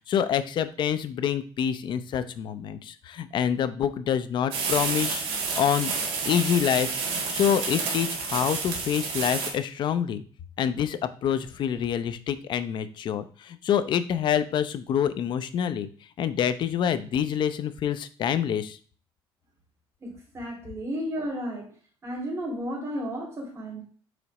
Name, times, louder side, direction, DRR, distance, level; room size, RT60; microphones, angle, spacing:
voice 1, 0.1-5.2 5.6-5.9 6.3-10.2 10.6-15.9 16.2-18.8, left 9 dB, 55° left, 12 dB, 0.6 m, -26 dB
sound 1, 4.5-9.5, right 5 dB, 90° right, 2.0 m, -29 dB
voice 2, 20.0-21.8 22.0-23.8, equal, 30° right, 0 dB, 2.6 m, -33 dB
5.1 x 4.0 x 5.9 m, 0.41 s
cardioid pair, 130°, 10 cm